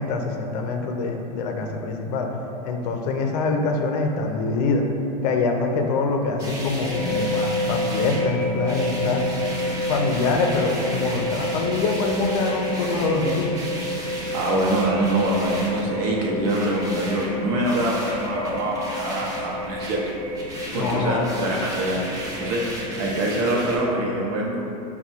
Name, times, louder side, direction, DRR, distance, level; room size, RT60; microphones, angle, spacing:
voice 1, 0.0-2.3 2.6-4.8 5.2-9.2 9.7-13.5 20.7-21.3, left 3 dB, 75° left, 3 dB, 0.5 m, -24 dB
sound 1, 6.4-23.8, right 1 dB, 20° right, 0.6 m, -35 dB
sound 2, 6.9-22.9, left 1 dB, 20° left, 0.8 m, -30 dB
voice 2, 14.3-20.0 20.7-24.6, right 1 dB, 60° right, -2 dB, 0.8 m, -24 dB
3.4 x 2.2 x 4.2 m, 2.9 s
supercardioid pair, 135°, 21 cm